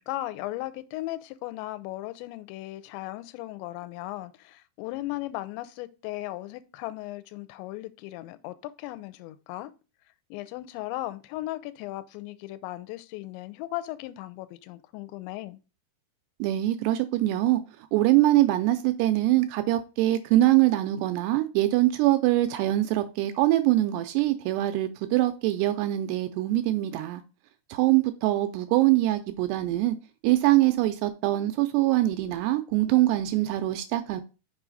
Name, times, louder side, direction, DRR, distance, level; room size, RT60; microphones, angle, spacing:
voice 1, 0.0-9.7 10.3-15.6, left 17 dB, 90° left, 2.8 m, -37 dB
voice 2, 16.4-17.6 17.9-27.2 27.7-30.0 30.2-34.2, right 16 dB, 85° right, 2.5 m, -23 dB
6.2 x 4.9 x 3.9 m
omnidirectional pair, 5.0 m